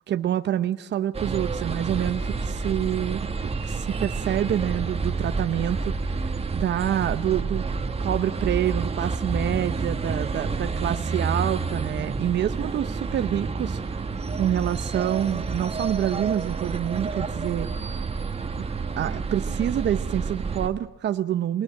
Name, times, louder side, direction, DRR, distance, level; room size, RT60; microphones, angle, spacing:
voice 1, 0.1-7.7 8.0-17.7 18.6-18.7 19.0-21.6, right 11 dB, 60° right, 10 dB, 0.7 m, -27 dB
sound 1, 1.1-20.7, right 4 dB, 30° right, 1.6 m, -29 dB
24.0 x 19.5 x 7.7 m, 0.94 s
cardioid pair, 90°, 20 cm